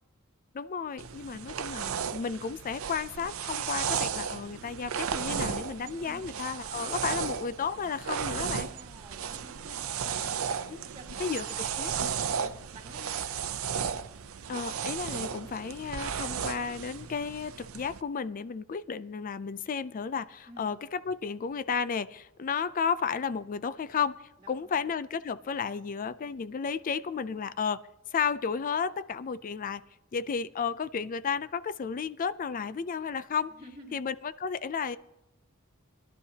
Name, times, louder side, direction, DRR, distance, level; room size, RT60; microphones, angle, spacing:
voice 1, 0.5-8.7 11.2-12.1 14.5-24.2 24.5-27.8 28.1-29.8 30.1-33.5 33.9-35.0, left 6 dB, 40° left, 15 dB, 0.4 m, -33 dB
sound 1, 1.0-18.0, right 7 dB, 80° right, 0.6 m, -34 dB
voice 2, 8.2-11.2 11.5-11.7 12.4-13.1 20.5-20.7 24.4-24.9 33.5-34.0, right 1 dB, 25° right, -6 dB, 1.9 m, -51 dB
20.0 x 11.5 x 2.8 m, 0.90 s
head